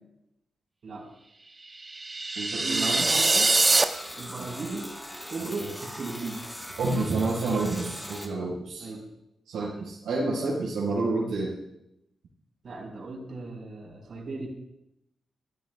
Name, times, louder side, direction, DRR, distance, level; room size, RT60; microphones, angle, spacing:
voice 1, 0.8-1.1 2.6-3.5 4.2-5.0 5.3-6.4 8.8-9.1 9.6-9.7 12.6-14.5, right 3 dB, 60° right, 0 dB, 4.8 m, -37 dB
sound 1, 1.8-3.8, right 3 dB, 35° right, 1.1 m, -23 dB
voice 2, 2.3-3.1 5.6-5.7 6.8-8.9 9.5-11.5, right 3 dB, 80° right, -5 dB, 4.5 m, -29 dB
sound 2, 2.9-8.3, equal, 10° left, 3.6 m, -41 dB
28.0 x 12.5 x 2.3 m, 0.84 s
supercardioid pair, 45°, 0 cm